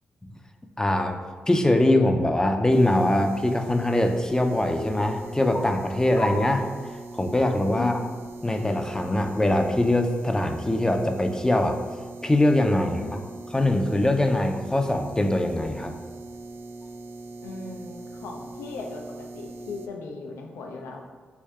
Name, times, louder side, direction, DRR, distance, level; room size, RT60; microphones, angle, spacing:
voice 1, 0.8-1.2 1.5-6.6 7.1-8.0 8.4-11.8 12.2-13.0 13.5-15.9, left 1 dB, 15° left, 5 dB, 0.4 m, -22 dB
sound 1, 2.7-19.9, right 2 dB, 60° right, 0.4 m, -41 dB
sound 2, 3.8-3.9 4.1-7.2 7.6-7.7 8.0-11.7 12.0-13.6 14.0-15.0 15.4-17.8 18.3-18.4 19.3-19.7, left 1 dB, 50° left, 1.0 m, -41 dB
voice 2, 17.4-21.0, left 4 dB, 80° left, 2 dB, 0.5 m, -37 dB
3.3 x 2.7 x 3.4 m, 1.5 s
hypercardioid pair, 40°, 4 cm